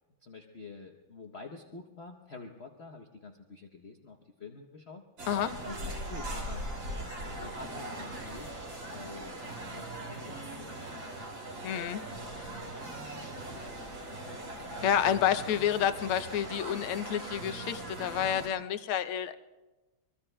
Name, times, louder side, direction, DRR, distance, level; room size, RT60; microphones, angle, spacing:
voice 1, 0.2-5.0 5.4-6.9 7.4-8.5 8.9-9.4 9.7-11.3 11.9-14.8 15.2-15.5, left 3 dB, 60° left, 3 dB, 0.6 m, -48 dB
sound 1, 5.2-18.5, right 1 dB, 65° right, 3.3 m, -40 dB
voice 2, 11.6-12.0 14.8-19.3, left 9 dB, 90° left, 10 dB, 1.6 m, -29 dB
24.5 x 23.0 x 2.2 m, 1.2 s
omnidirectional pair, 2.3 m